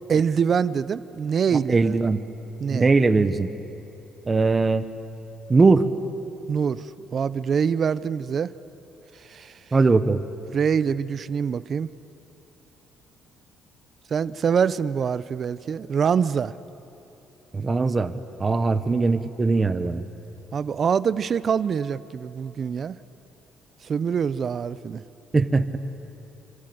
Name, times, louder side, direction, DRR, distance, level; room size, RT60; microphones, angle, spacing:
voice 1, 0.0-2.0 2.6-2.9 6.5-8.5 9.2-9.6 10.5-11.9 14.1-16.5 20.5-23.0 23.8-25.0, right 7 dB, 40° right, 16 dB, 0.7 m, -25 dB
voice 2, 1.7-2.2 2.7-3.5 4.3-4.9 5.5-5.9 9.7-10.2 17.5-18.1 18.4-20.0 25.3-25.8, right 3 dB, 25° right, 10 dB, 1.1 m, -20 dB
26.5 x 25.5 x 7.9 m, 2.9 s
cardioid pair, 120°, 0 cm